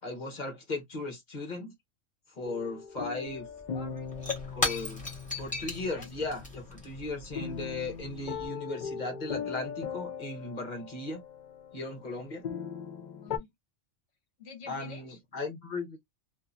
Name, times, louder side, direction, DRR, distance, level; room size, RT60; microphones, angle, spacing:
voice 1, 0.0-1.7 2.3-3.5 4.5-5.0 5.3-11.2 11.7-12.4 14.7-16.0, left 2 dB, 35° left, 1.0 m, -37 dB
sound 1, 2.4-13.4, left 7 dB, 85° left, 0.4 m, -40 dB
Shatter / Crushing, 3.3-3.4 3.6-8.5, left 2 dB, 5° left, 1.1 m, -37 dB
voice 2, 3.7-4.4 6.0-6.3 13.1-13.5 14.4-15.2, left 4 dB, 60° left, 1.3 m, -48 dB
2.8 x 2.6 x 2.4 m
omnidirectional pair, 1.4 m